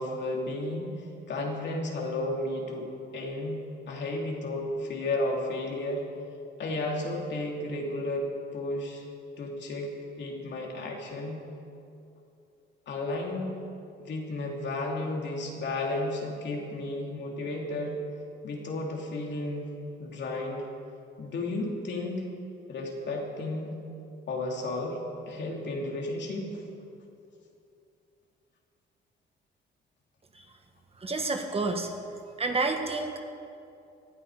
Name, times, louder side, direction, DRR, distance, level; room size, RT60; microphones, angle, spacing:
voice 1, 0.0-6.0 6.6-8.3 8.5-9.0 9.4-9.9 10.2-11.4 12.9-13.6 14.0-18.0 18.4-19.7 20.0-20.7 21.2-22.2 22.7-23.7 24.3-25.0 25.3-26.6, left 2 dB, 65° left, -1 dB, 3.2 m, -33 dB
voice 2, 31.0-31.9 32.4-33.2, right 3 dB, 30° right, 4 dB, 1.6 m, -29 dB
18.5 x 12.5 x 5.0 m, 2.6 s
cardioid pair, 90°, 20 cm